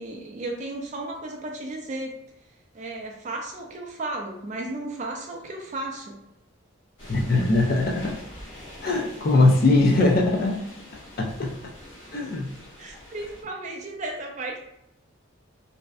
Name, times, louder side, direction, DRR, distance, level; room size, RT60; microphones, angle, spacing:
voice 1, 0.0-2.2 2.7-6.2 12.8-14.6, right 2 dB, 35° right, 1 dB, 0.4 m, -34 dB
sound 1, 7.0-13.4, left 1 dB, 65° left, 1.1 m, -44 dB
voice 2, 7.1-8.2 8.8-10.6 11.2-11.5 12.1-12.5, left 2 dB, 45° left, 0 dB, 0.4 m, -21 dB
2.6 x 2.1 x 2.3 m, 0.82 s
head